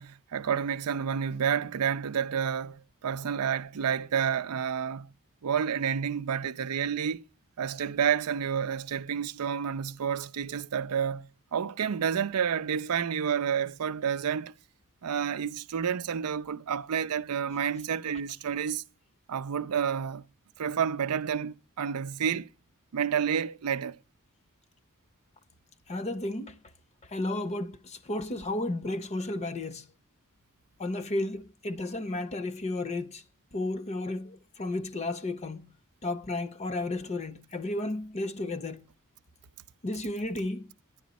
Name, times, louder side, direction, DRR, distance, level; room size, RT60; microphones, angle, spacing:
voice 1, 0.0-5.1 5.4-7.2 7.6-14.5 15.0-18.8 19.3-20.2 20.6-22.5 22.9-24.0, right 7 dB, 90° right, 0.5 m, -30 dB
voice 2, 25.9-26.6 27.1-29.9 30.8-33.2 33.5-35.7 36.0-38.9 39.8-40.7, left 2 dB, 30° left, 0.6 m, -33 dB
10.5 x 10.0 x 4.1 m
head